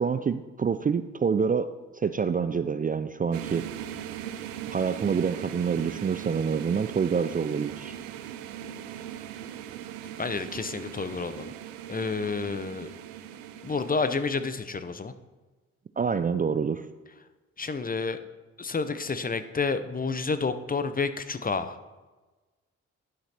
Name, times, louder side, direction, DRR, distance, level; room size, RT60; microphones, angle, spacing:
voice 1, 0.0-1.7 2.0-3.6 4.7-7.9 16.0-16.8, right 6 dB, 25° right, 11 dB, 0.4 m, -27 dB
sound 1, 3.3-14.6, right 10 dB, 90° right, 0.6 m, -40 dB
voice 2, 10.2-11.5 11.9-12.9 13.6-15.1 17.6-18.2 18.6-21.8, left 4 dB, 25° left, 11 dB, 0.8 m, -30 dB
11.0 x 5.8 x 4.3 m, 1.2 s
hypercardioid pair, 50°, 32 cm